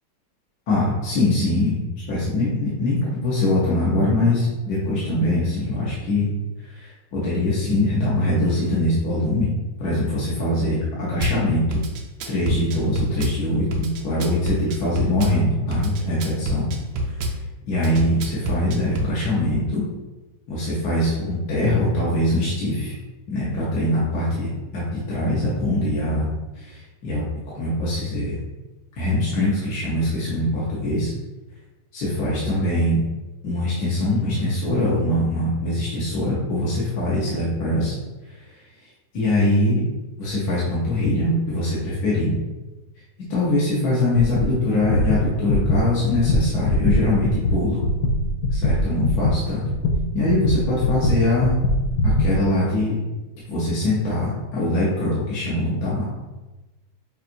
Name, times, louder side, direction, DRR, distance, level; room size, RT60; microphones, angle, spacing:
voice 1, 0.7-1.8 2.1-6.3 6.6-9.5 9.8-11.8 12.3-16.7 17.7-19.8 20.5-22.9 23.3-26.3 26.6-27.2 27.6-28.3 29.0-31.1 31.9-33.0 33.4-37.9 39.1-39.8 40.2-42.3 43.3-47.8 48.5-49.6 50.1-51.6 52.0-53.0 53.5-56.1, left 1 dB, 60° left, -8 dB, 1.4 m, -22 dB
Drum kit / Bass drum, 11.2-11.4 11.7-13.4 13.7-15.4 15.7-17.4 17.8-19.1, right 1 dB, 75° right, 1.0 m, -26 dB
sound 1, 44.2-44.5 44.8-52.4, left 1 dB, 80° left, 0.8 m, -21 dB
5.6 x 2.4 x 2.6 m, 1.1 s
omnidirectional pair, 2.1 m